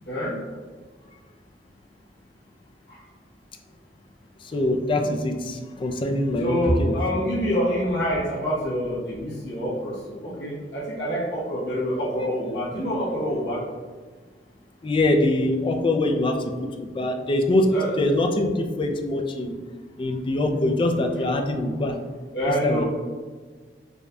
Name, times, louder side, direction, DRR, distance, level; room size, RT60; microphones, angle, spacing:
voice 1, 4.4-7.2 14.8-16.5 16.8-19.6 20.0-22.0 22.5-22.8, left 1 dB, 30° left, 4 dB, 0.3 m, -24 dB
voice 2, 6.4-13.6 17.7-17.9 22.3-22.9, equal, 65° left, -8 dB, 1.0 m, -26 dB
4.8 x 2.6 x 2.2 m, 1.5 s
head